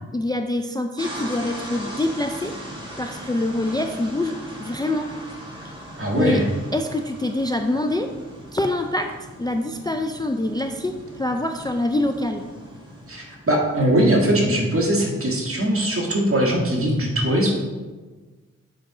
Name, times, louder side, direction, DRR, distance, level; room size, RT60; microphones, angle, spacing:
voice 1, 0.1-2.6 3.0-5.2 6.1-6.4 6.7-8.1 8.5-12.5, left 1 dB, 15° left, 5 dB, 0.3 m, -25 dB
sound 1, 1.0-13.8, equal, 15° right, 1.7 m, -39 dB
voice 2, 5.9-6.4 13.1-17.6, right 1 dB, 50° right, -2 dB, 1.7 m, -21 dB
7.5 x 3.9 x 4.8 m, 1.3 s
wide cardioid pair, 95°, 29 cm